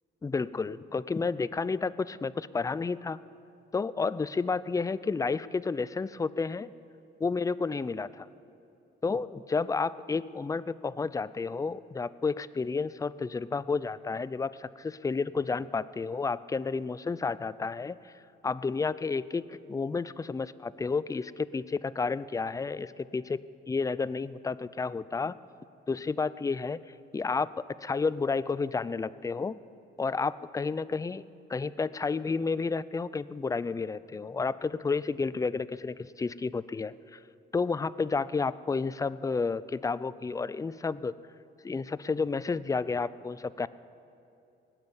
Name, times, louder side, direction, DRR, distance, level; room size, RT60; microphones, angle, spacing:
voice 1, 0.2-3.2 3.7-6.7 7.2-8.3 9.0-18.1 18.4-25.4 25.9-26.8 27.1-27.5 27.8-29.6 30.0-37.2 37.5-41.1 41.6-43.7, left 4 dB, 15° left, 17 dB, 0.4 m, -31 dB
19.0 x 8.9 x 8.0 m, 2.7 s
cardioid pair, 90°, 20 cm